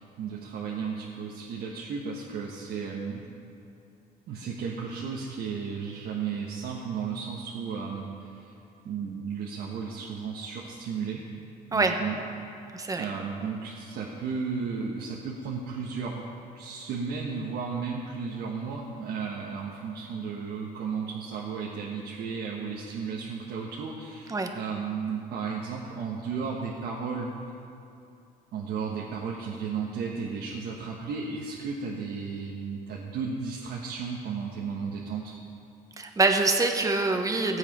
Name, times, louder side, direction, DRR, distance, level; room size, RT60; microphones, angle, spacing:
voice 1, 0.0-3.3 4.3-8.5 8.8-11.2 11.7-12.2 13.0-16.3 16.5-27.3 28.5-35.3, right 5 dB, 70° right, -3 dB, 1.3 m, -34 dB
voice 2, 12.7-13.0 24.3-24.5 36.0-37.6, right 3 dB, 20° right, 4 dB, 1.2 m, -25 dB
16.0 x 8.2 x 5.4 m, 2.6 s
cardioid pair, 110°, 17 cm